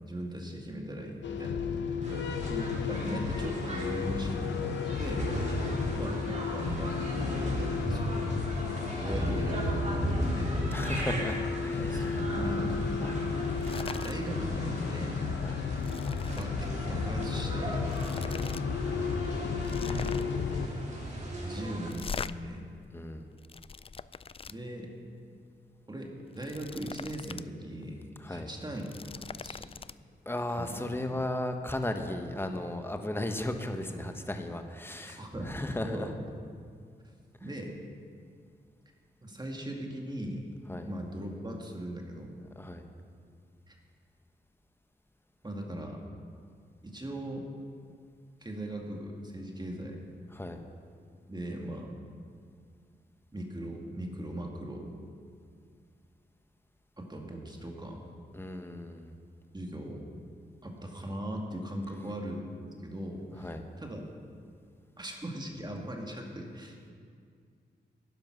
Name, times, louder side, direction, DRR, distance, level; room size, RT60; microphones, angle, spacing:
voice 1, 0.1-1.6 2.4-5.3 5.9-7.0 7.4-8.4 9.0-10.6 11.8-12.9 14.0-15.2 16.4-17.8 19.2-19.4 19.8-20.3 21.4-22.6 24.5-24.9 25.9-28.0 28.3-28.9 29.2-29.7 30.5-30.8 35.1-36.2 37.4-37.8 39.2-40.5 40.9-42.3 43.7-43.8 45.4-46.0 46.8-47.5 48.4-50.0 51.3-51.9 53.3-54.9 57.0-58.0 59.5-60.1 60.6-64.0 65.0-66.9, right 1 dB, 25° right, 1 dB, 2.1 m, -39 dB
sound 1, 1.2-20.7, left 6 dB, 80° left, 0.8 m, -33 dB
sound 2, 2.0-21.9, right 1 dB, 40° right, 4.0 m, -37 dB
voice 2, 2.1-2.5 5.7-6.0 10.7-12.2 13.0-13.2 15.4-15.6 18.2-18.5 22.9-23.2 28.2-28.5 30.3-36.1 40.7-40.9 42.6-42.8 50.3-50.6 58.3-59.1 63.4-63.6, left 1 dB, 10° left, 6 dB, 1.2 m, -36 dB
sound 3, 13.5-14.2 14.5-14.8 15.1-16.5 17.4-17.5 17.8-18.6 18.9-19.0 19.6-20.4 21.9-22.3 23.1-24.5 26.2-27.5 27.8-27.9 28.6-29.9, left 5 dB, 30° left, 0.4 m, -41 dB
11.0 x 10.5 x 6.2 m, 2.2 s
cardioid pair, 50°, 19 cm